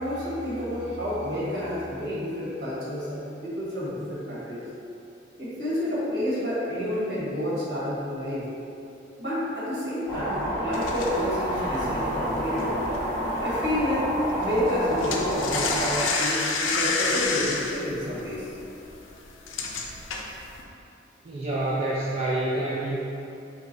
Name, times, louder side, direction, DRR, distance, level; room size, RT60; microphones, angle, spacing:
voice 1, 0.0-4.6 5.4-8.4 9.2-12.8 13.4-18.5, left 1 dB, 60° right, -9 dB, 1.3 m, -29 dB
sound 1, 10.1-16.0, equal, 20° left, 0.8 m, -29 dB
sound 2, 10.7-13.5 13.8-14.0 14.3-20.6, left 4 dB, 90° left, 0.4 m, -29 dB
voice 2, 21.2-22.9, right 1 dB, 35° right, -7 dB, 0.4 m, -27 dB
3.3 x 2.9 x 3.9 m, 2.8 s
head